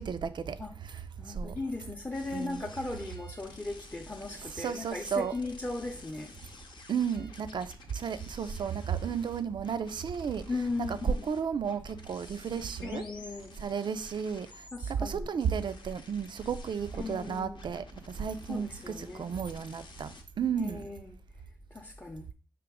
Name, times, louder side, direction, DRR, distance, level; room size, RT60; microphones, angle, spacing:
voice 1, 0.0-1.0 1.3-1.5 2.3-2.7 4.5-5.4 6.9-10.5 10.8-13.0 13.6-20.8, right 7 dB, 65° right, 0.4 m, -33 dB
voice 2, 1.2-6.3 10.5-11.3 12.8-13.6 14.7-15.3 17.0-17.6 18.5-19.3 20.6-21.1 21.7-22.3, left 2 dB, 20° left, 0.6 m, -37 dB
sound 1, 2.1-14.8 15.4-20.2, left 3 dB, 65° left, 0.7 m, -52 dB
4.9 x 2.9 x 3.5 m
cardioid pair, 55°, 9 cm